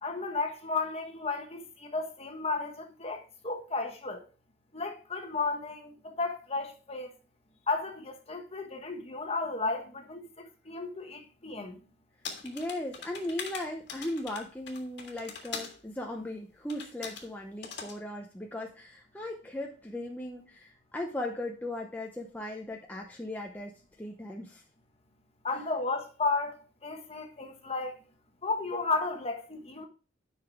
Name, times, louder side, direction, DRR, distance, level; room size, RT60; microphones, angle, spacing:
voice 1, 0.0-4.2 4.7-7.1 7.7-11.8 25.4-26.6 26.8-28.0 28.4-29.9, left 3 dB, 30° left, 1.3 m, -33 dB
sound 1, 12.2-15.8 16.7-17.3 17.6-18.0, left 6 dB, 60° left, 1.7 m, -41 dB
voice 2, 12.4-24.6, left 1 dB, 10° left, 0.8 m, -38 dB
9.9 x 5.9 x 3.5 m
head